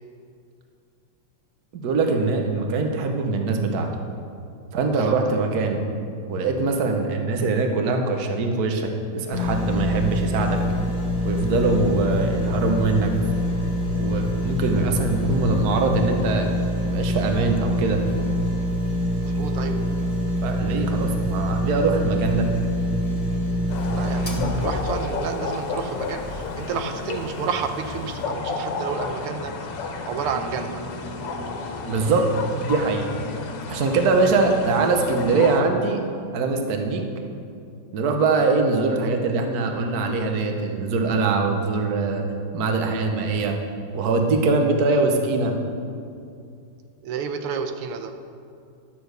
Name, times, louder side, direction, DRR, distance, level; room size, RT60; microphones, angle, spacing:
voice 1, 1.7-3.9 4.7-5.8 6.3-10.6 11.2-13.1 13.9-16.5 16.8-18.0 20.4-22.5 31.9-32.3 32.6-33.0 33.7-36.0 36.3-37.0 37.9-42.2 42.5-43.5 43.9-45.5, right 3 dB, 55° right, 4 dB, 1.3 m, -22 dB
voice 2, 4.9-5.4 19.2-19.8 23.9-29.5 30.1-30.8 47.0-48.1, right 6 dB, 85° right, 6 dB, 1.6 m, -30 dB
sound 1, 9.3-26.5 27.0-27.1, equal, 20° left, 1.2 m, -25 dB
sound 2, 23.7-35.6, left 4 dB, 85° left, 2.0 m, -32 dB
11.5 x 7.0 x 6.6 m, 2.5 s
omnidirectional pair, 2.4 m